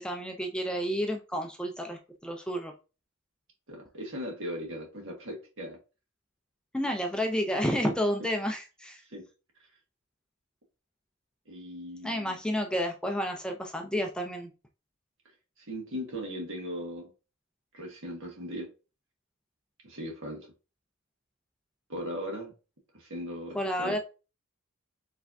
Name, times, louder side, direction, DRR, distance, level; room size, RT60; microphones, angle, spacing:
voice 1, 0.0-2.7 6.7-9.0 12.0-14.5 23.5-24.0, equal, 5° left, 0.4 m, -30 dB
voice 2, 3.7-5.8 7.8-7.9 9.1-9.3 11.4-12.4 15.6-17.1 17.7-18.7 19.8-20.5 21.9-22.5 22.9-23.9, equal, 60° right, 1.6 m, -38 dB
4.8 x 3.3 x 2.6 m
head